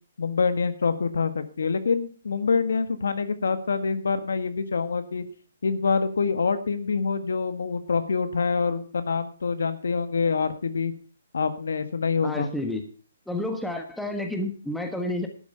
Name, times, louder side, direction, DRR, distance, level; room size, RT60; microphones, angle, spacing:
voice 1, 0.2-5.2 5.6-10.9 11.3-12.5, left 5 dB, 80° left, 10 dB, 1.6 m, -26 dB
voice 2, 12.2-12.8 13.3-15.3, left 1 dB, ahead, 4 dB, 1.4 m, -30 dB
12.0 x 8.5 x 5.6 m, 0.40 s
hypercardioid pair, 160°, 0 cm